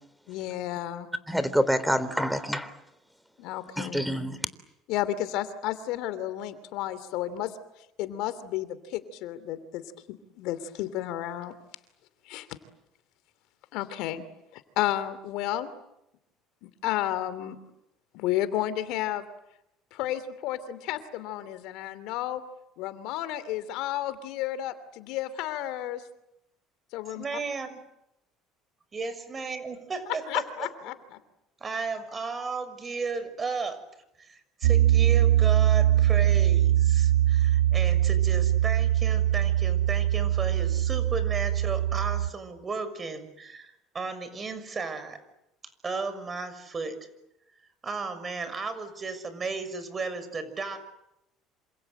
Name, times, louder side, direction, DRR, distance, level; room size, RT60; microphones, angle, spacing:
voice 1, 0.3-1.1 3.4-4.0 4.9-7.5 8.0-9.8 10.1-11.5 12.3-12.6 13.7-14.2 14.5-15.7 16.6-17.6 18.1-19.3 19.9-22.4 22.8-26.0 26.9-27.2 30.3-30.9, left 13 dB, 70° left, 2.9 m, -32 dB
voice 2, 1.3-2.7 3.8-4.4, equal, ahead, 3.5 m, -26 dB
voice 3, 27.1-27.8 28.9-30.4 31.6-33.8 34.2-45.2 45.8-47.0 47.8-50.8, right 4 dB, 30° right, 6.5 m, -34 dB
Piano, 34.6-42.3, right 12 dB, 85° right, 1.1 m, -22 dB
28.0 x 27.0 x 8.0 m
hypercardioid pair, 75°, 0 cm